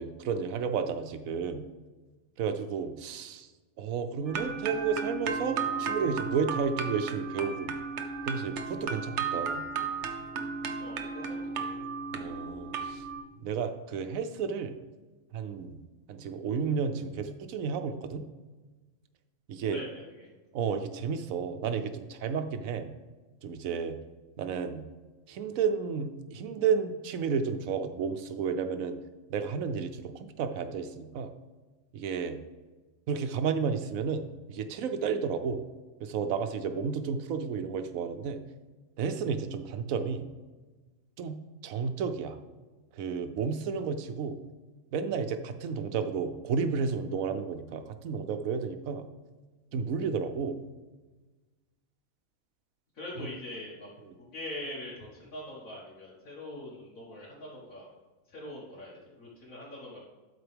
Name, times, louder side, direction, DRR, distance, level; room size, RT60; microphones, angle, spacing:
voice 1, 0.0-1.7 2.4-3.5 3.8-7.7 8.2-9.6 12.1-13.0 13.4-14.7 15.3-15.8 16.1-18.2 19.5-19.8 20.5-22.9 23.4-23.9 24.4-24.8 25.3-29.0 29.3-31.3 31.9-32.4 33.1-35.6 36.0-38.4 39.0-40.3 41.2-41.4 41.6-42.4 42.9-44.4 44.9-49.1 49.7-50.6 53.2-53.3 54.1-54.2, right 6 dB, 90° right, 8 dB, 1.1 m, -32 dB
sound 1, 4.3-13.2, right 5 dB, 65° right, 1.0 m, -34 dB
voice 2, 10.8-11.7 19.6-20.3 52.9-53.9 54.2-57.9 58.3-60.0, left 1 dB, 85° left, -8 dB, 2.2 m, -43 dB
12.5 x 4.4 x 3.4 m, 1.3 s
omnidirectional pair, 1.4 m